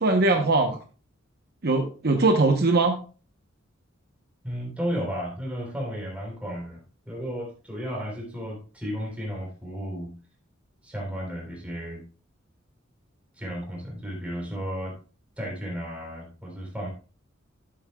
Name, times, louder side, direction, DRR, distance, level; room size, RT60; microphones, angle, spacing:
voice 1, 0.0-0.8 1.6-3.0, right 3 dB, 50° right, 4 dB, 0.9 m, -21 dB
voice 2, 4.4-6.8 7.1-10.1 10.8-12.0 13.4-14.9 15.4-16.9, equal, 5° right, -2 dB, 3.6 m, -33 dB
11.0 x 8.3 x 2.3 m, 0.37 s
head